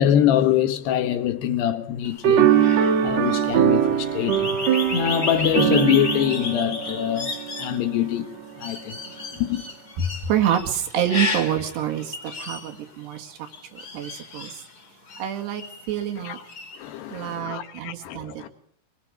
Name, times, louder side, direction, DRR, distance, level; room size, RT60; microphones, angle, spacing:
voice 1, 0.0-2.5 3.0-4.6 4.9-7.3 7.6-9.0 9.3-9.6 16.2-16.5 16.8-18.5, left 10 dB, 80° left, 3.5 m, -24 dB
sound 1, 2.0-16.1 16.4-17.2, left 4 dB, 30° left, 2.3 m, -33 dB
sound 2, 2.2-7.8, right 10 dB, 55° right, 2.1 m, -22 dB
voice 2, 10.0-13.4 13.7-14.5 15.2-16.4 17.1-18.5, right 9 dB, 85° right, 4.1 m, -27 dB
24.5 x 22.5 x 5.2 m
omnidirectional pair, 4.7 m